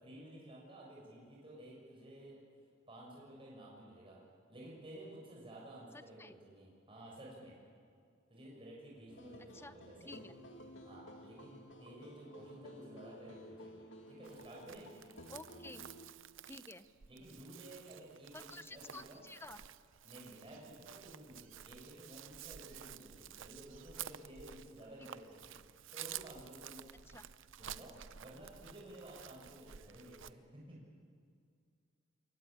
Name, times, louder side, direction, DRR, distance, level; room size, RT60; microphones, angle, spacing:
voice 1, 0.0-2.4 2.9-4.2 4.5-7.6 8.3-10.1 10.8-14.9 17.0-19.2 20.0-25.5 25.9-26.8 27.6-30.8, right 1 dB, 25° right, -4 dB, 6.7 m, -53 dB
voice 2, 5.9-6.3 9.5-9.8 10.0-10.3 15.3-15.8 16.5-16.9 18.3-19.6 25.0-25.1 27.1-27.2, left 2 dB, 10° left, 12 dB, 0.8 m, -51 dB
sound 1, 9.1-16.1, equal, 65° left, 2.5 m, -54 dB
Chirp tweet, 14.2-30.3, right 10 dB, 65° right, 0.7 m, -52 dB
27.5 x 23.0 x 8.9 m, 2.3 s
head